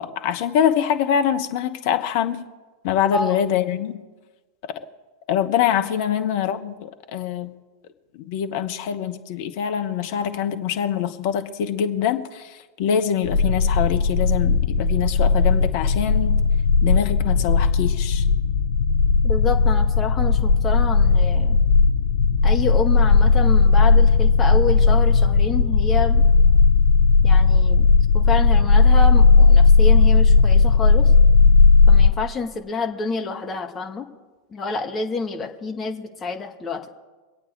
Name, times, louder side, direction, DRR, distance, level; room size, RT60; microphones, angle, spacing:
voice 1, 0.0-2.4 2.8-4.0 5.3-7.6 8.1-16.4 16.8-18.2, left 9 dB, 50° left, 8 dB, 1.1 m, -24 dB
sound 1, 13.2-32.1, left 4 dB, 70° left, 0.5 m, -16 dB
voice 2, 19.2-21.6 22.4-26.2 27.2-27.9 28.1-31.1 31.9-34.1 34.5-36.9, left 3 dB, 20° left, 3 dB, 1.7 m, -28 dB
24.0 x 8.6 x 4.6 m, 1.3 s
figure-of-eight pair, 90°, 0 cm